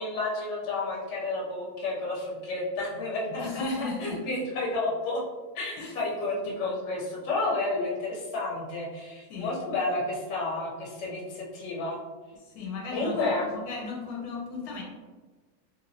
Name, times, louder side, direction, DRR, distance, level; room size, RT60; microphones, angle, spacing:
voice 1, 0.0-5.2 5.5-12.0 12.9-13.5, left 2 dB, 55° left, -3 dB, 1.0 m, -31 dB
voice 2, 3.4-4.2 5.8-5.9 9.3-9.6 12.4-14.8, left 3 dB, 80° left, -1 dB, 1.1 m, -35 dB
3.0 x 2.8 x 2.6 m, 1.3 s
omnidirectional pair, 1.6 m